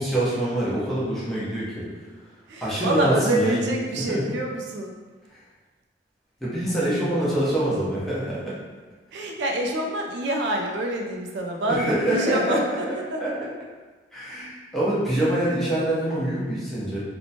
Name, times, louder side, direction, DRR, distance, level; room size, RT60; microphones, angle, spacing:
voice 1, 0.0-1.8 2.6-3.6 3.9-4.2 6.4-8.6 9.1-9.3 11.7-13.3 14.1-17.0, right 1 dB, ahead, -10 dB, 0.7 m, -25 dB
voice 2, 2.5-4.9 9.1-12.6 13.1-13.2, right 1 dB, 70° right, 1 dB, 0.3 m, -26 dB
2.9 x 2.1 x 2.7 m, 1.3 s
head